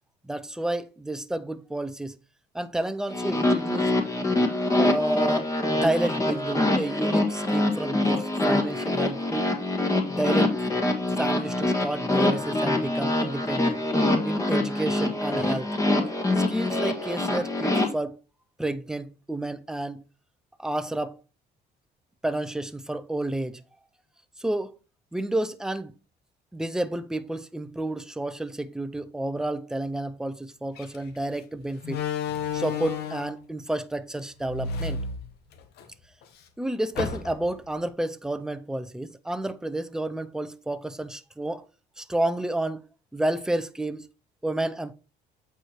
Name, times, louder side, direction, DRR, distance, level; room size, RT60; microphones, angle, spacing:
voice 1, 0.2-2.2 2.5-3.9 4.7-9.5 10.0-10.5 11.2-13.8 14.2-15.7 16.3-18.2 18.6-20.0 20.6-21.2 22.2-23.6 24.4-24.7 25.1-25.9 26.5-32.0 32.5-35.0 36.6-41.6 42.0-42.8 43.1-44.1 44.4-44.9, right 1 dB, 5° right, 0.6 m, -30 dB
sound 1, 3.1-17.9, left 2 dB, 20° left, 1.6 m, -25 dB
Slam, 30.8-31.0 31.8-33.4 34.4-35.8 36.2-36.3 36.9-37.6, left 6 dB, 75° left, 1.2 m, -31 dB
8.1 x 4.7 x 4.4 m
cardioid pair, 110°, 17 cm